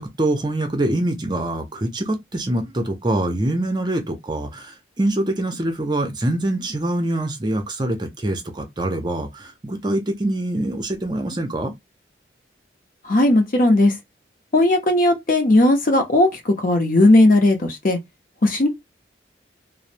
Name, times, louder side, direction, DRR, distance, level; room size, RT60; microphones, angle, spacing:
voice 1, 0.0-11.7, right 1 dB, 25° right, 0.5 m, -24 dB
voice 2, 13.0-13.9 14.5-18.0 18.4-18.7, left 1 dB, 50° left, 0.7 m, -16 dB
3.0 x 2.0 x 2.5 m
head